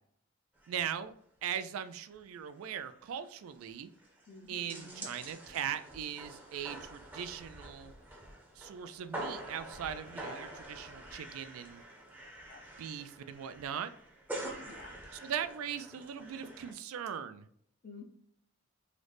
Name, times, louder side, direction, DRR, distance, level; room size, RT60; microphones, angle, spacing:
sound 1, 0.6-0.8 1.0-1.1 1.6-1.9 2.2-2.3 2.5-16.7, right 1 dB, 10° right, 0.5 m, -46 dB
voice 1, 0.7-1.1 1.4-3.9 4.5-7.9 8.6-11.8 12.8-13.9 15.2-17.5, right 8 dB, 85° right, 11 dB, 0.3 m, -39 dB
voice 2, 4.3-5.1 10.2-10.4 12.5-12.6 14.7-15.0 17.8-18.0, left 3 dB, 45° left, 4 dB, 0.4 m, -50 dB
3.8 x 2.1 x 3.2 m, 0.64 s
head